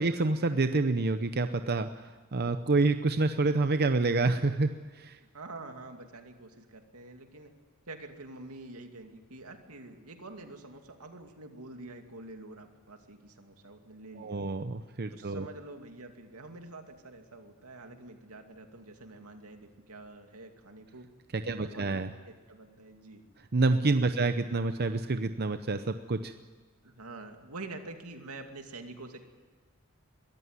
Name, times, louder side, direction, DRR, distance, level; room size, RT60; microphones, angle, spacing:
voice 1, 0.0-5.2 14.2-15.5 21.3-22.1 23.5-26.3, right 3 dB, 45° right, 9 dB, 0.7 m, -28 dB
voice 2, 5.3-7.5 7.9-14.4 15.1-21.1 21.4-23.2 24.0-24.6 26.8-29.2, right 2 dB, 85° right, 5 dB, 2.5 m, -47 dB
22.5 x 14.0 x 9.6 m, 1.4 s
head